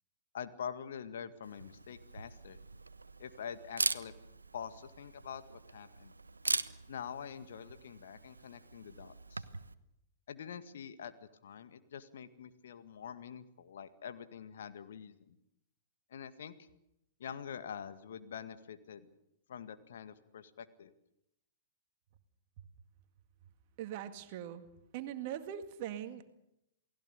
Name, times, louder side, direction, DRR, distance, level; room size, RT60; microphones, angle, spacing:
voice 1, 0.3-2.6 3.2-4.1 4.5-6.1 6.9-9.4 10.3-11.1 11.4-15.4 16.1-16.7 17.2-19.1 19.5-20.9, left 8 dB, 60° left, 10 dB, 1.9 m, -45 dB
Camera, 1.4-9.7, right 3 dB, 80° right, 1.1 m, -41 dB
voice 2, 23.8-24.6 24.9-26.3, right 10 dB, 40° right, 8 dB, 2.0 m, -41 dB
29.0 x 19.0 x 6.9 m, 0.83 s
figure-of-eight pair, 110°, 0 cm